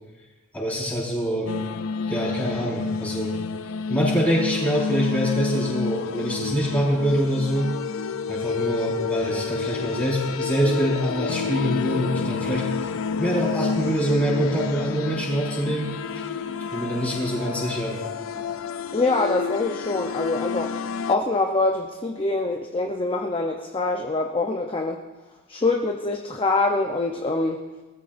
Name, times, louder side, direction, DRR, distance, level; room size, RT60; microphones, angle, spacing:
voice 1, 0.5-1.6 2.1-3.3 3.9-7.7 8.3-12.6 13.2-16.2 16.7-18.0, equal, 5° left, -6 dB, 4.8 m, -25 dB
sound 1, 1.5-21.1, left 5 dB, 65° left, 0.5 m, -29 dB
voice 2, 18.9-25.0 25.5-27.6, left 3 dB, 25° left, 2 dB, 0.7 m, -24 dB
21.0 x 14.0 x 2.6 m, 1.2 s
head